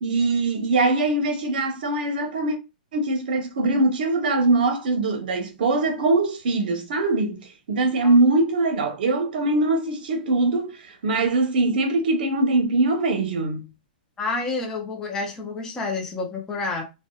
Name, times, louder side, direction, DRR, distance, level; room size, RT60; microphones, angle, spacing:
voice 1, 0.0-2.6 2.9-13.6, right 2 dB, 70° right, 0.8 m, -22 dB
voice 2, 14.2-16.8, left 3 dB, 10° left, 0.4 m, -29 dB
2.6 x 2.1 x 2.2 m
hypercardioid pair, 155°, 5 cm